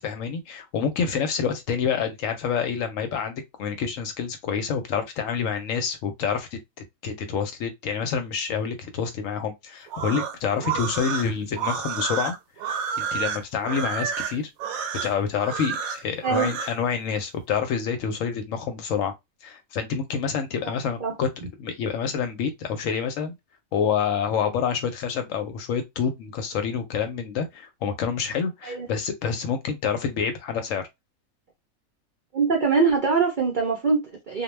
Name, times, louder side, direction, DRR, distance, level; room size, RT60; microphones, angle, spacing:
voice 1, 0.0-6.6 7.0-12.3 13.0-14.5 15.0-19.1 19.4-21.3 21.6-23.3 23.7-30.8, left 6 dB, 70° left, 0.9 m, -27 dB
sound 1, 9.9-16.8, right 7 dB, 80° right, 1.0 m, -30 dB
voice 2, 16.2-16.5 20.6-20.7 21.0-21.2 28.6-28.9 32.3-34.4, right 5 dB, 55° right, 0.5 m, -23 dB
2.3 x 2.1 x 3.1 m
omnidirectional pair, 1.5 m